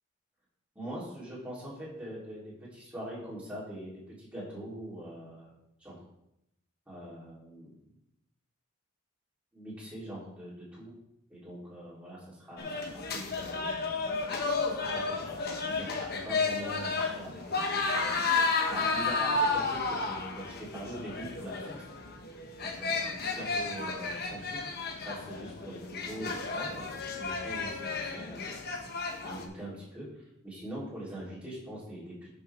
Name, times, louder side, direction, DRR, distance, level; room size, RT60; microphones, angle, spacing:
voice 1, 0.8-5.5 5.8-6.0 6.9-7.7 9.5-10.9 11.3-13.7 14.7-18.2 18.7-21.7 22.6-24.8 25.0-28.5 29.2-32.3, right 1 dB, 5° right, -8 dB, 3.7 m, -43 dB
sound 1, 12.6-29.4, left 3 dB, 50° left, 1.2 m, -32 dB
11.0 x 6.8 x 3.7 m, 0.83 s
head